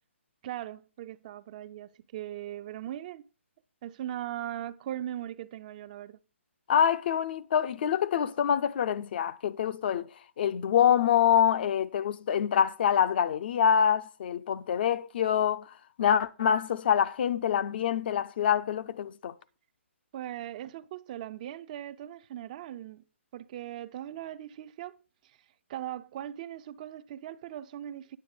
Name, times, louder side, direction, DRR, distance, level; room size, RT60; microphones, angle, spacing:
voice 1, 0.4-3.2 3.8-6.2 20.1-23.0 23.3-25.0 25.2-25.4 25.7-28.2, right 12 dB, 35° right, 0.5 m, -39 dB
voice 2, 6.7-10.1 10.4-15.7 16.0-19.3, left 8 dB, 45° left, 0.5 m, -25 dB
9.6 x 6.8 x 5.0 m
hypercardioid pair, 150°, 7 cm